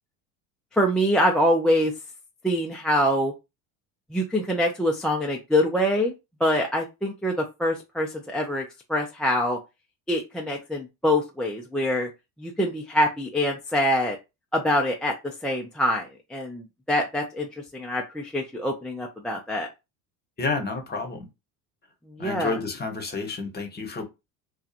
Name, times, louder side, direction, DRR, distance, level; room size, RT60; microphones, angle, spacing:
voice 1, 0.7-1.9 2.4-3.3 4.1-6.1 6.4-8.6 8.9-9.6 10.1-12.1 12.4-14.2 14.5-19.7 22.2-22.6, equal, ahead, 0.5 m, -25 dB
voice 2, 20.4-21.3 22.2-24.0, left 3 dB, 20° left, 1.0 m, -30 dB
2.7 x 2.4 x 2.5 m
supercardioid pair, 85°, 45 cm